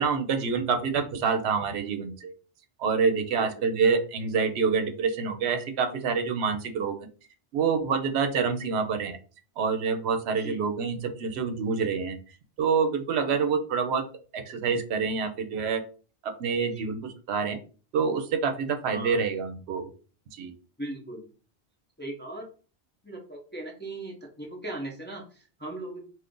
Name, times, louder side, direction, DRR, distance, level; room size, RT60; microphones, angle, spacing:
voice 1, 0.0-2.3 2.8-7.1 7.5-9.2 9.6-12.2 12.6-14.0 14.3-15.8 16.2-17.6 17.9-19.9 20.3-20.5, right 5 dB, 80° right, 7 dB, 0.8 m, -27 dB
voice 2, 10.3-10.6 13.2-13.4 16.6-16.9 18.9-19.2 20.8-21.3 22.0-22.5 23.0-26.1, right 1 dB, 15° left, -1 dB, 0.5 m, -39 dB
2.5 x 2.5 x 3.6 m, 0.37 s
omnidirectional pair, 1.1 m